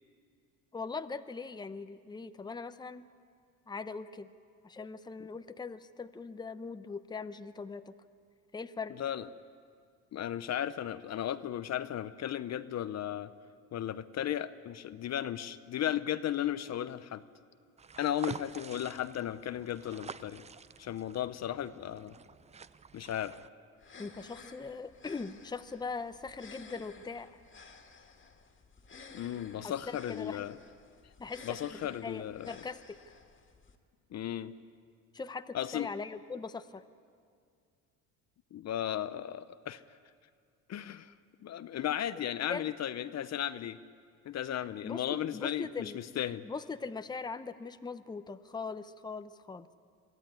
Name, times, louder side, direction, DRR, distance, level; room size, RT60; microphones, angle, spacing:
voice 1, 0.7-3.1 3.7-4.3 4.6-7.9 8.5-9.0 24.0-27.4 29.6-30.4 31.2-33.0 35.1-36.8 42.5-42.7 44.8-46.0 46.4-49.7, left 4 dB, 10° left, 11 dB, 0.7 m, -41 dB
voice 2, 10.1-13.3 13.7-17.2 18.0-20.4 20.8-22.2 22.9-23.4 29.1-30.6 31.0-31.1 31.4-32.5 34.1-34.5 35.5-35.9 38.5-39.8 40.7-41.1 41.4-43.8 44.2-46.5, left 11 dB, 50° left, 13 dB, 0.7 m, -35 dB
sound 1, 17.8-23.5, right 5 dB, 20° right, 0.5 m, -47 dB
sound 2, 23.8-33.7, left 4 dB, 35° left, 2.1 m, -54 dB
23.0 x 14.5 x 9.5 m, 2.3 s
supercardioid pair, 90°, 35 cm